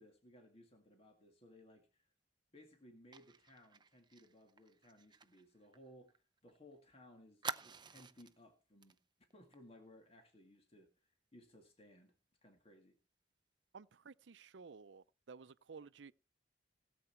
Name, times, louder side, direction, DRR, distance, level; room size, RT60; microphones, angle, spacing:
voice 1, 0.0-2.1 2.5-9.0 9.3-12.1 12.4-13.0, left 1 dB, 35° left, 2.0 m, -62 dB
Fire, 3.1-6.6 6.8-6.9 7.4-8.4 8.8-9.0 9.3-9.5, right 5 dB, 25° right, 0.6 m, -48 dB
voice 2, 13.7-16.1, right 5 dB, 75° right, 0.6 m, -55 dB
17.0 x 8.0 x 4.4 m
head